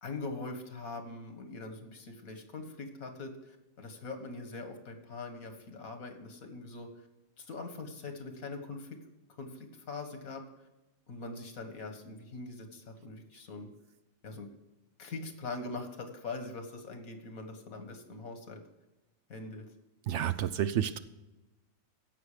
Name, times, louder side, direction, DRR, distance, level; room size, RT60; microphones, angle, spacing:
voice 1, 0.0-6.9 7.4-9.0 9.4-10.4 11.1-13.7 14.2-14.5 15.0-18.6 19.3-19.7, left 3 dB, 85° left, 6 dB, 2.0 m, -42 dB
voice 2, 20.1-21.0, right 10 dB, 65° right, 12 dB, 0.8 m, -30 dB
16.0 x 6.1 x 5.0 m, 1.0 s
omnidirectional pair, 1.4 m